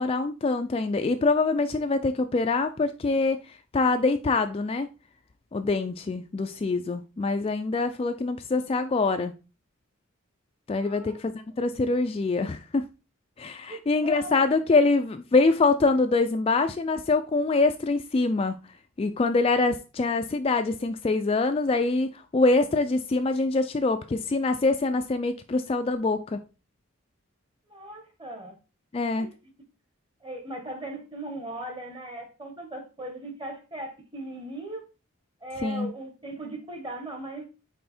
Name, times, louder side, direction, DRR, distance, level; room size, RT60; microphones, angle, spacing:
voice 1, 0.0-3.4 3.7-4.9 5.5-9.3 10.7-12.8 13.4-18.6 19.0-26.4 28.9-29.3 35.6-35.9, left 3 dB, 25° left, 0.3 m, -24 dB
voice 2, 10.8-11.2 13.7-14.5 27.7-28.6 29.2-29.4 30.2-34.8 35.4-37.4, right 1 dB, 25° right, 1.2 m, -38 dB
5.5 x 4.3 x 4.2 m
head